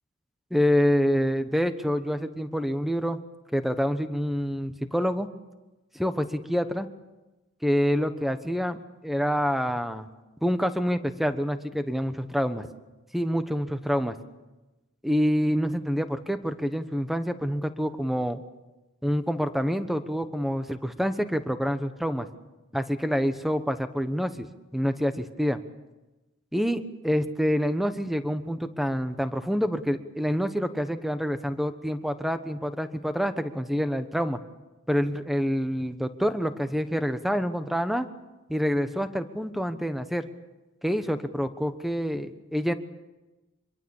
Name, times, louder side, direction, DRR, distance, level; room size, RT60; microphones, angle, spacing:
voice 1, 0.5-3.2 3.5-5.3 5.9-6.9 7.6-10.1 10.4-12.7 13.1-14.2 15.0-18.4 19.0-22.3 22.7-25.6 26.5-34.4 34.9-38.1 38.5-40.3 40.8-42.7, equal, ahead, 9 dB, 1.1 m, -27 dB
25.5 x 22.5 x 7.2 m, 1.1 s
head